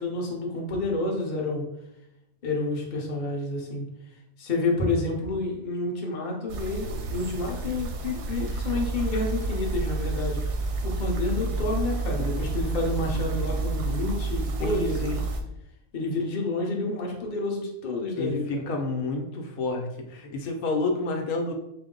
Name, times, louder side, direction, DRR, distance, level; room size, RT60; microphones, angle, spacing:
voice 1, 0.0-1.7 2.4-3.8 4.4-10.4 10.8-15.3 15.9-18.7, left 2 dB, 40° left, -1 dB, 0.8 m, -29 dB
sound 1, 6.5-15.4, right 3 dB, 65° right, 0.7 m, -30 dB
voice 2, 14.6-15.2 18.2-19.9 20.1-21.5, left 2 dB, 85° left, 3 dB, 1.1 m, -29 dB
4.4 x 2.0 x 3.7 m, 0.84 s
omnidirectional pair, 1.5 m